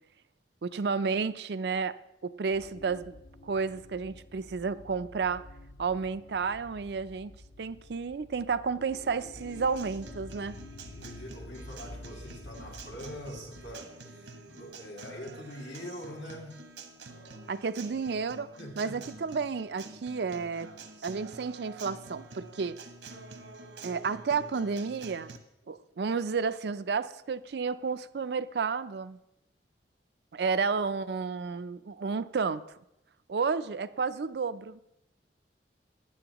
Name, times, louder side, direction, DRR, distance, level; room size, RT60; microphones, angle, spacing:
voice 1, 0.6-2.0 2.2-3.2 3.4-5.4 5.8-10.6 17.5-18.5 18.8-20.7 21.0-22.8 23.8-25.3 25.7-29.2 30.3-32.6 33.3-34.8, right 5 dB, 65° right, 0.4 m, -31 dB
sound 1, 2.5-13.8, left 1 dB, 55° left, 0.8 m, -49 dB
Acoustic guitar, 9.4-25.4, right 3 dB, 85° right, 1.2 m, -48 dB
voice 2, 10.9-16.6 18.6-18.9, equal, 90° left, 2.6 m, -44 dB
15.5 x 10.5 x 3.0 m
head